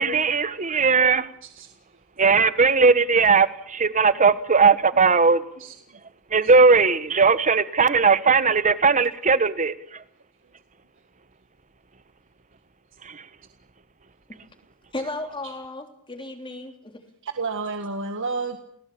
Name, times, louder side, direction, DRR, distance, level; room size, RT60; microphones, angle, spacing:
voice 1, 0.0-1.3 2.2-5.4 6.3-10.0 13.0-13.2, right 4 dB, 35° right, 1.4 m, -18 dB
voice 2, 14.9-17.0, left 2 dB, 25° left, 3.4 m, -34 dB
voice 3, 17.2-18.6, right 4 dB, 60° right, 1.8 m, -30 dB
29.5 x 18.5 x 8.7 m
head